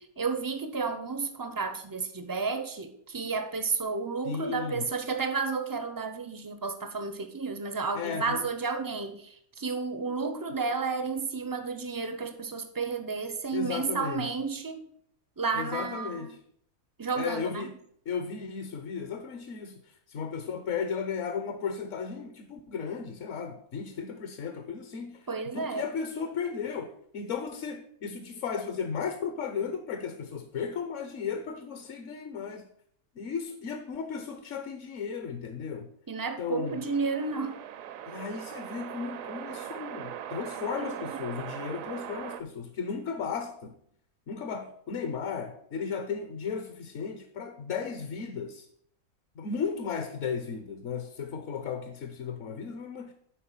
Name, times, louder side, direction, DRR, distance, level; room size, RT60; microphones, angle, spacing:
voice 1, 0.0-14.8 15.4-16.3 17.0-17.7 25.3-25.9 36.1-37.6 40.8-41.2, right 4 dB, 35° right, 0.3 m, -32 dB
voice 2, 4.2-4.9 7.9-8.5 13.5-14.2 15.5-16.4 17.2-17.8 18.1-19.8 20.1-25.2 25.5-32.7 33.2-35.9 36.4-36.8 38.1-43.7 44.3-48.7 49.4-53.1, left 6 dB, 60° left, 1.1 m, -35 dB
sound 1, 36.7-42.4, right 10 dB, 70° right, 0.9 m, -40 dB
10.5 x 4.1 x 5.6 m
omnidirectional pair, 1.5 m